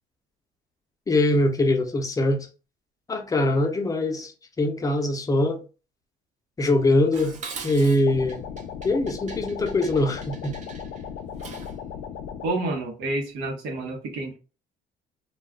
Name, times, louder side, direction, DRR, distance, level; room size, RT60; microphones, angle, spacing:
voice 1, 1.1-2.5 3.1-5.6 6.6-7.4 7.6-8.4 8.8-10.6, left 1 dB, 20° left, 0.6 m, -23 dB
Dishes pots and pans, 7.1-11.8, right 5 dB, 45° right, 0.7 m, -42 dB
sound 1, 8.1-12.5, left 8 dB, 80° left, 0.5 m, -37 dB
voice 2, 12.4-14.4, right 2 dB, 85° right, 0.9 m, -29 dB
2.3 x 2.2 x 3.5 m
cardioid pair, 110°, 17 cm